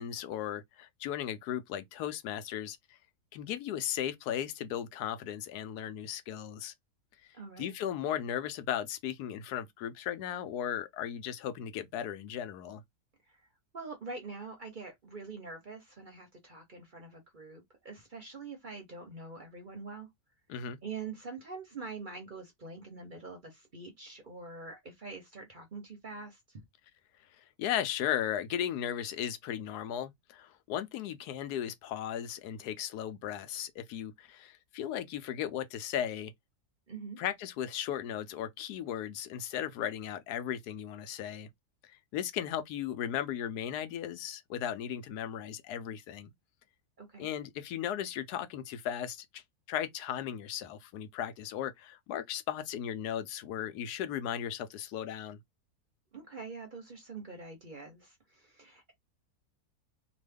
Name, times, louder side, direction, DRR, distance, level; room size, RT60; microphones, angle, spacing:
voice 1, 0.0-2.8 3.3-6.7 7.6-12.8 20.5-20.8 27.4-36.3 37.2-41.5 41.8-46.3 47.2-55.4, left 10 dB, 90° left, 1.2 m, -36 dB
voice 2, 7.3-7.7 13.3-13.4 13.7-20.1 20.8-26.6 36.9-37.2 47.0-47.3 56.1-58.9, right 4 dB, 45° right, 0.7 m, -45 dB
3.0 x 2.2 x 3.4 m
omnidirectional pair, 1.6 m